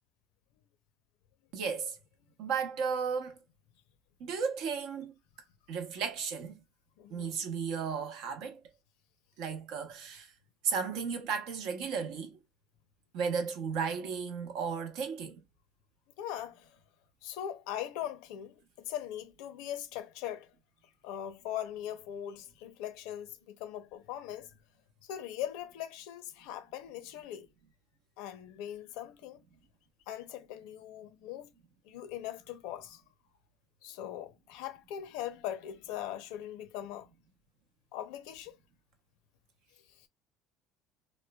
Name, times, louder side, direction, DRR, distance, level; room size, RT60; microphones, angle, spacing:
voice 1, 1.5-2.0 2.4-3.4 4.2-5.1 5.7-6.6 7.1-8.6 9.4-10.3 10.6-12.4 13.1-15.4, right 6 dB, 75° right, 0.7 m, -34 dB
voice 2, 7.0-7.3 16.2-16.8 17.2-20.5 21.0-24.5 25.0-27.5 28.2-29.4 30.1-31.5 31.8-33.0 33.8-37.1 37.9-38.6 39.9-40.1, left 11 dB, 80° left, 0.5 m, -40 dB
3.0 x 2.1 x 2.2 m
supercardioid pair, 100°, 0 cm